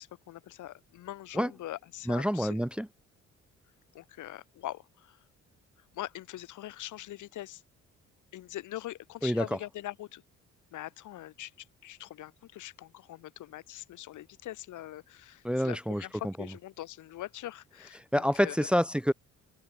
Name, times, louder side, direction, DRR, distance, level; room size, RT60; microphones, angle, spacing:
voice 1, 0.0-2.7 3.9-5.2 5.9-7.6 8.3-10.2 10.7-18.7, left 14 dB, 80° left, 1.9 m, -43 dB
voice 2, 2.1-2.9 9.2-9.4 15.4-16.0 18.1-19.1, equal, 5° right, 0.7 m, -27 dB
cardioid pair, 90°, 30 cm